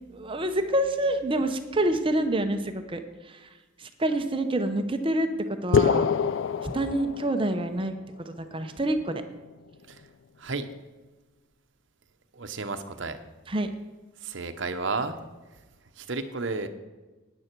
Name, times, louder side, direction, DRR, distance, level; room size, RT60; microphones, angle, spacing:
voice 1, 0.1-6.1 6.6-8.0 8.3-9.2 13.5-13.7, right 1 dB, 25° right, 7 dB, 0.7 m, -27 dB
sound 1, 5.7-7.7, left 6 dB, 60° left, 0.4 m, -25 dB
voice 2, 12.3-13.2 14.2-15.2 16.0-16.7, right 3 dB, 60° right, 8 dB, 0.9 m, -32 dB
13.5 x 9.8 x 4.6 m, 1.2 s
head